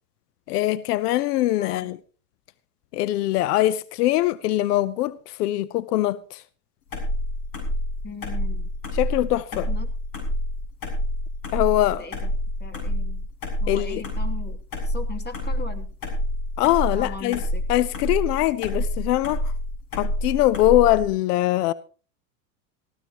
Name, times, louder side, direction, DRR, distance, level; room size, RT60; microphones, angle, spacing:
voice 1, 0.5-2.0 2.9-6.4 8.9-9.7 11.5-12.1 13.7-14.0 16.6-17.4 17.7-19.5 19.9-21.7, left 15 dB, 80° left, 0.8 m, -22 dB
voice 2, 1.6-1.9 8.0-8.7 9.5-9.9 12.0-12.3 12.6-13.2 13.6-15.9 16.9-17.6, left 3 dB, 20° left, 2.8 m, -39 dB
sound 1, 6.9-21.1, left 1 dB, 50° left, 6.9 m, -28 dB
18.5 x 15.0 x 3.0 m
supercardioid pair, 110°, 46 cm